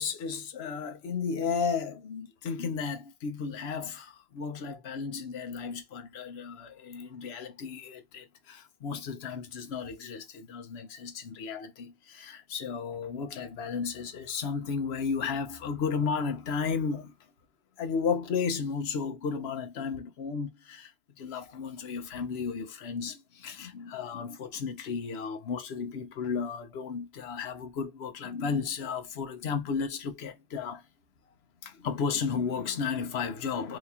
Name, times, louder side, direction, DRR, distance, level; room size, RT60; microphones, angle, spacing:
voice 1, 0.0-17.1 17.8-20.9 21.2-30.8 31.6-33.8, left 5 dB, 70° left, 0.9 m, -33 dB
2.8 x 2.8 x 3.4 m
omnidirectional pair, 1.2 m